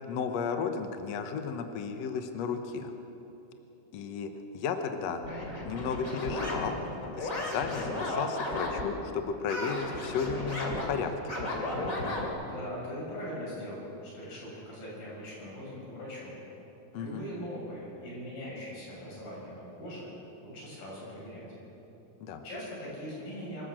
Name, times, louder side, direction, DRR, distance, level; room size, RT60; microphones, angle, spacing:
voice 1, 0.0-2.9 3.9-5.2 5.7-6.8 7.2-11.4 16.9-17.3 22.2-22.4, left 6 dB, 65° left, 7 dB, 1.9 m, -34 dB
sound 1, 5.2-9.0 9.5-12.3, left 1 dB, 25° left, 3.0 m, -34 dB
voice 2, 12.4-16.3 17.0-20.1 20.4-21.5 22.4-23.7, equal, 85° left, -5 dB, 8.6 m, -41 dB
24.5 x 14.0 x 7.7 m, 3.0 s
omnidirectional pair, 4.0 m